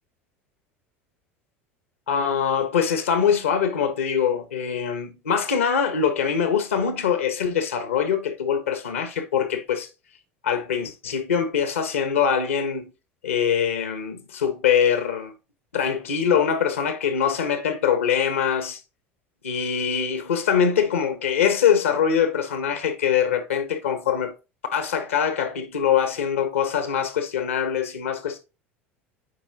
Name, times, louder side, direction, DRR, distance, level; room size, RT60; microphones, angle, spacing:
voice 1, 2.1-9.9 10.4-12.9 13.2-15.3 15.7-18.8 19.4-24.3 24.7-28.4, left 7 dB, 85° left, 1.2 m, -23 dB
8.3 x 5.0 x 2.8 m
hypercardioid pair, 75°, 7 cm